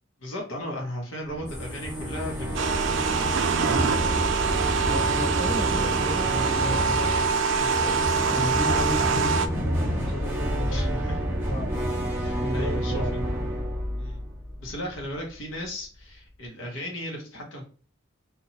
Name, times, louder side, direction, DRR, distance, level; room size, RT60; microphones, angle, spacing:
voice 1, 0.2-2.7 10.7-11.1 12.1-13.0 14.0-14.2 14.6-17.7, left 1 dB, 70° left, -1 dB, 0.7 m, -36 dB
sound 1, 1.3-15.3, equal, 10° right, 0.5 m, -29 dB
sound 2, 1.5-6.6, equal, 90° left, 1.2 m, -44 dB
sound 3, 2.5-9.5, right 5 dB, 65° right, 0.3 m, -25 dB
voice 2, 4.8-7.2 7.6-11.9 12.4-13.1, left 1 dB, 45° left, -4 dB, 1.1 m, -34 dB
2.7 x 2.2 x 2.8 m, 0.41 s
head